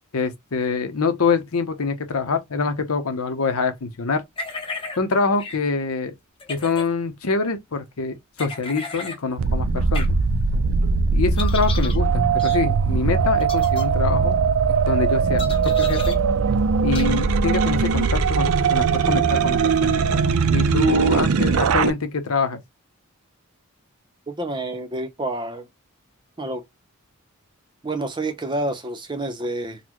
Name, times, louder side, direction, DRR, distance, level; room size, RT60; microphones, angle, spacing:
voice 1, 0.1-4.2 5.0-6.1 6.5-10.1 11.1-14.4 14.8-16.2 16.8-20.0 20.5-22.6, left 4 dB, 80° left, 0.7 m, -25 dB
sound 1, 4.4-5.0 5.4-5.6 6.4-6.9 8.4-9.2 9.9-10.1 11.4-12.0 12.4-12.6 13.4-13.8 15.4-16.2 16.9-17.1, left 4 dB, 25° left, 0.8 m, -33 dB
sound 2, 9.4-21.9, right 5 dB, 75° right, 0.4 m, -20 dB
voice 2, 24.3-25.7 26.4-26.6 27.8-29.8, right 2 dB, 20° right, 0.6 m, -28 dB
4.0 x 2.1 x 2.9 m
head